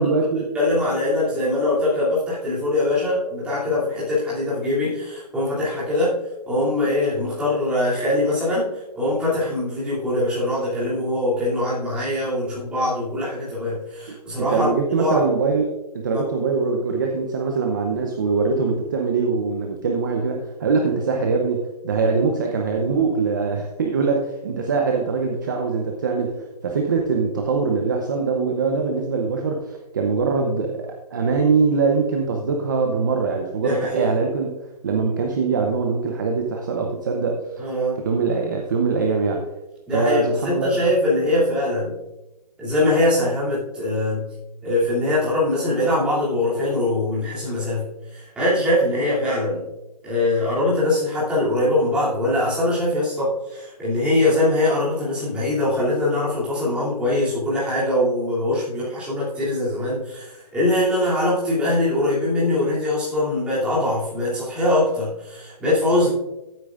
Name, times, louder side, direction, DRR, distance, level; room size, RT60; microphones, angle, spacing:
voice 1, 0.0-0.5 14.4-26.4 26.6-34.5 34.8-37.6 38.0-39.5 39.9-40.7, right 4 dB, 30° right, 2 dB, 0.8 m, -22 dB
voice 2, 0.5-6.2 6.5-14.7 15.0-15.2 16.1-16.2 33.6-34.1 37.6-38.0 39.9-42.0 42.6-44.2 44.6-47.8 48.1-49.6 50.0-66.1, left 1 dB, 5° right, -10 dB, 2.8 m, -22 dB
14.5 x 8.6 x 2.5 m, 1.0 s
hypercardioid pair, 175°, 21 cm